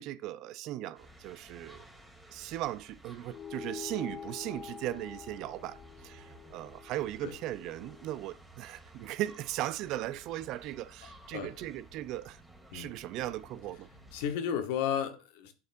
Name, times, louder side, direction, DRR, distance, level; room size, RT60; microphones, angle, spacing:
voice 1, 0.0-1.8 2.3-12.4 12.7-13.9, right 14 dB, 55° right, 0.4 m, -38 dB
sound 1, 0.9-14.3, right 1 dB, 5° right, 1.8 m, -55 dB
sound 2, 3.3-8.1, left 8 dB, 35° left, 0.8 m, -46 dB
voice 2, 11.3-11.7 12.7-12.9 14.1-15.6, left 8 dB, 65° left, 1.1 m, -33 dB
11.0 x 4.2 x 2.5 m
hypercardioid pair, 80°, 0 cm